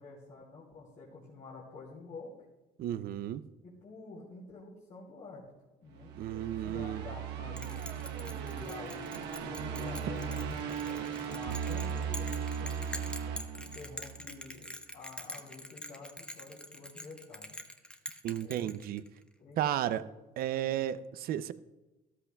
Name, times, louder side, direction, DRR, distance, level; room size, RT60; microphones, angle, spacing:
voice 1, 0.0-2.3 3.6-5.5 5.8-6.1 6.5-7.9 8.2-13.1 13.6-17.6 18.4-18.7 19.4-19.6 19.9-20.1 20.4-21.0, left 3 dB, 50° left, -5 dB, 2.8 m, -49 dB
voice 2, 2.8-3.4 6.2-7.0 18.2-19.0 19.6-20.0 20.4-21.5, right 11 dB, 60° right, 15 dB, 0.5 m, -33 dB
sound 1, 6.0-14.3, right 7 dB, 85° right, 1.0 m, -37 dB
Bell, 7.6-19.2, left 1 dB, 5° left, 0.8 m, -45 dB
13.5 x 12.5 x 2.3 m, 1.1 s
cardioid pair, 110°, 17 cm